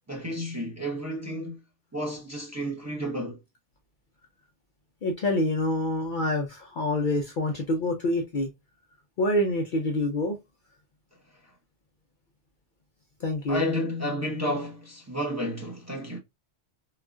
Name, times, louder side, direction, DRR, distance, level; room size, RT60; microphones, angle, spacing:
voice 1, 0.1-1.6 1.9-3.4 13.5-16.2, equal, 15° right, 0.8 m, -31 dB
voice 2, 5.0-8.5 9.2-10.4 13.2-13.6, left 1 dB, 55° left, 0.6 m, -26 dB
3.8 x 2.3 x 2.2 m
omnidirectional pair, 1.2 m